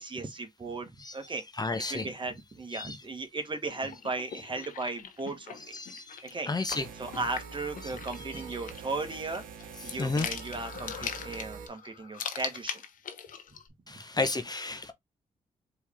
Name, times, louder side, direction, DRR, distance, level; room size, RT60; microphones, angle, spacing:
voice 1, 0.0-1.4 1.9-5.8 6.2-9.4 9.8-12.8, right 3 dB, 35° right, 1.4 m, -36 dB
voice 2, 1.6-2.0 2.7-3.0 5.7-6.8 10.0-10.3 13.9-14.9, left 3 dB, 30° left, 0.9 m, -32 dB
sound 1, 3.6-13.7, left 7 dB, 75° left, 0.9 m, -41 dB
sound 2, 6.7-11.7, right 6 dB, 85° right, 0.9 m, -45 dB
4.6 x 3.3 x 3.6 m
cardioid pair, 60°, 14 cm